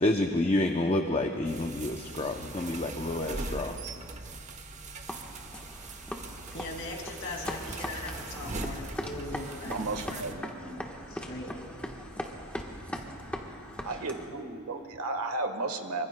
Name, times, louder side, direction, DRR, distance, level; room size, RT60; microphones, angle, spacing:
voice 1, 0.0-3.8, left 1 dB, 25° left, 3 dB, 0.6 m, -28 dB
sound 1, 1.4-10.3, right 2 dB, 30° right, 0.9 m, -41 dB
sound 2, 5.1-14.3, equal, 5° left, 1.2 m, -40 dB
voice 2, 6.5-9.8 10.1-10.2 11.1-11.5, left 2 dB, 60° left, 1 dB, 2.4 m, -40 dB
voice 3, 9.6-10.8 13.8-16.1, right 2 dB, 75° right, 6 dB, 1.4 m, -34 dB
26.0 x 24.5 x 2.2 m, 2.5 s
head